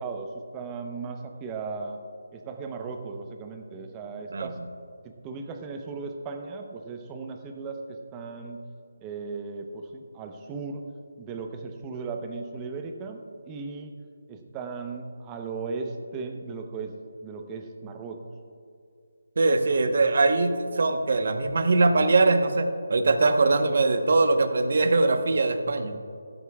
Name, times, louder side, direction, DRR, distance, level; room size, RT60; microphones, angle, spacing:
voice 1, 0.0-2.0 2.3-4.6 5.0-8.6 9.0-10.8 11.2-13.9 14.3-18.2, right 4 dB, 15° right, 5 dB, 0.7 m, -36 dB
voice 2, 19.4-26.0, right 3 dB, 60° right, 8 dB, 1.0 m, -22 dB
15.5 x 12.0 x 2.3 m, 2.5 s
figure-of-eight pair, 160°, 0 cm